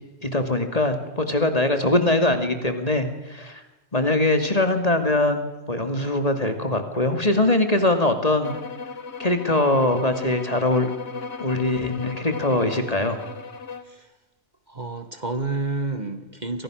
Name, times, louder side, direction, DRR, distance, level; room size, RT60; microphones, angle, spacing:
voice 1, 0.2-3.6 3.9-8.5 9.2-10.9 11.4-13.2, left 2 dB, 35° left, 6 dB, 2.8 m, -22 dB
sound 1, 8.4-13.9, left 5 dB, 70° left, 2.0 m, -36 dB
voice 2, 14.7-16.6, right 3 dB, 40° right, 9 dB, 1.9 m, -29 dB
30.0 x 25.0 x 6.5 m, 1.1 s
omnidirectional pair, 1.1 m